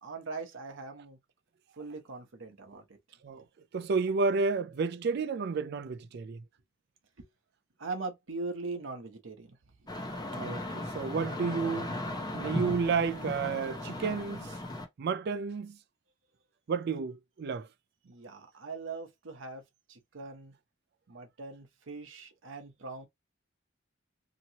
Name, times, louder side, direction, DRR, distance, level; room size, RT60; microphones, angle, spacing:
voice 1, 0.0-1.2 1.8-3.0 7.2-7.3 7.8-9.6 18.0-19.6 19.9-20.5 21.1-23.1, right 3 dB, 75° right, 0.9 m, -41 dB
voice 2, 3.7-6.4 10.3-11.9 12.3-14.5 15.0-15.8 16.7-17.7, right 4 dB, 55° right, 0.4 m, -31 dB
sound 1, 9.9-14.8, left 1 dB, 20° left, 0.7 m, -37 dB
2.9 x 2.8 x 2.8 m
head